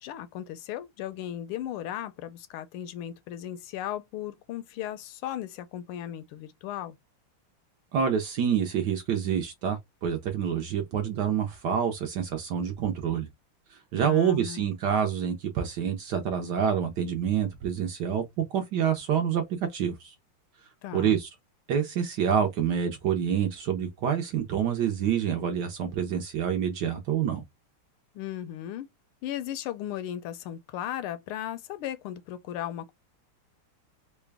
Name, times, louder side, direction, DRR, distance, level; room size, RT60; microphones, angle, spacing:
voice 1, 0.0-7.0 13.9-14.7 20.8-21.2 28.1-28.9 29.2-32.9, left 11 dB, 85° left, 1.5 m, -36 dB
voice 2, 7.9-13.3 13.7-19.4 19.7-20.1 20.9-21.3 21.7-27.4, right 8 dB, 70° right, 1.1 m, -27 dB
3.9 x 2.2 x 3.3 m
omnidirectional pair, 2.4 m